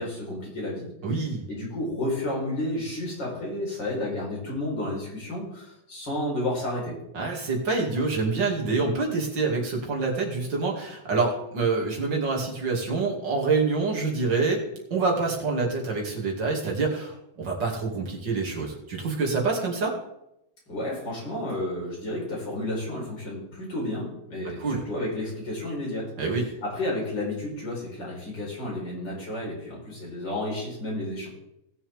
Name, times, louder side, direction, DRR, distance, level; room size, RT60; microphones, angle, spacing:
voice 1, 0.0-0.9 1.5-6.9 20.7-26.1 26.6-31.3, left 1 dB, 65° left, -4 dB, 5.4 m, -31 dB
voice 2, 1.0-1.4 7.1-14.6 14.9-20.0 24.6-24.8 26.2-26.4, right 4 dB, 65° right, -1 dB, 3.2 m, -26 dB
19.5 x 7.2 x 3.6 m, 0.84 s
omnidirectional pair, 2.1 m